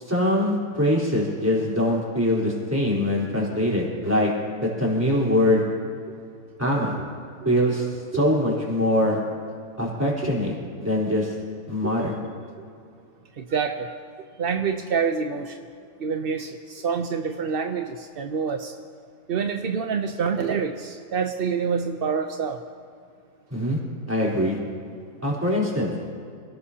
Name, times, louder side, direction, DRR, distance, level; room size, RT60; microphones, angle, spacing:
voice 1, 0.0-4.3 4.6-5.6 6.6-6.9 7.4-9.2 9.8-10.5 10.8-11.3 11.7-12.1 23.5-23.8 24.1-24.6 25.2-25.9, left 1 dB, 10° right, -5 dB, 4.0 m, -23 dB
voice 2, 13.4-13.9 14.4-15.6 16.0-18.7 19.3-22.6, right 6 dB, 60° right, 5 dB, 0.6 m, -27 dB
26.5 x 17.5 x 2.9 m, 2.3 s
omnidirectional pair, 1.8 m